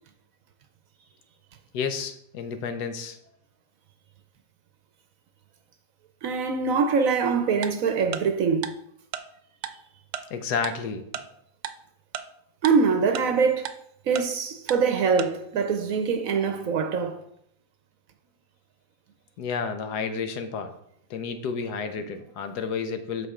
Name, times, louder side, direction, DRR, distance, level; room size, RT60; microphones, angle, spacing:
voice 1, 1.7-3.2 10.3-11.2 19.4-20.7 21.1-23.3, left 5 dB, 75° left, 1.3 m, -31 dB
voice 2, 6.2-8.7 12.6-13.8 14.1-17.2, right 5 dB, 65° right, 1.0 m, -24 dB
Tick-tock, 7.6-7.7 8.1-8.2 8.6-8.7 9.1-9.2 9.6-9.7 10.1-10.2 10.6-10.7 11.1-11.2 11.6-11.7 12.1-12.2 12.6-12.7 13.1-13.2 13.6-13.7 14.1-14.2 14.7-14.8 15.2-15.3, right 10 dB, 85° right, 1.2 m, -32 dB
8.2 x 5.7 x 3.7 m
omnidirectional pair, 1.8 m